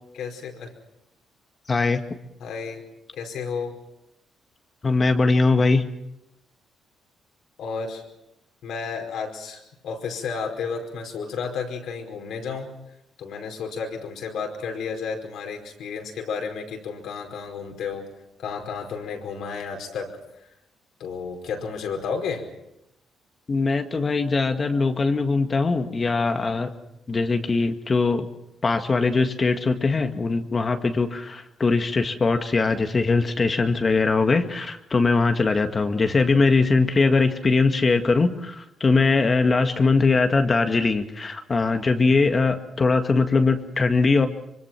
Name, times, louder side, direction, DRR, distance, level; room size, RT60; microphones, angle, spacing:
voice 1, 0.1-0.7 2.4-2.8 3.1-3.8 7.6-8.0 8.6-12.8 13.2-18.1 18.4-20.1 21.0-22.4, left 5 dB, 75° left, 3 dB, 5.0 m, -32 dB
voice 2, 1.7-2.0 4.8-5.9 23.5-26.7 27.1-28.3 28.6-44.3, left 3 dB, 35° left, 6 dB, 1.8 m, -21 dB
25.5 x 23.5 x 6.0 m, 0.84 s
cardioid pair, 90°, 0 cm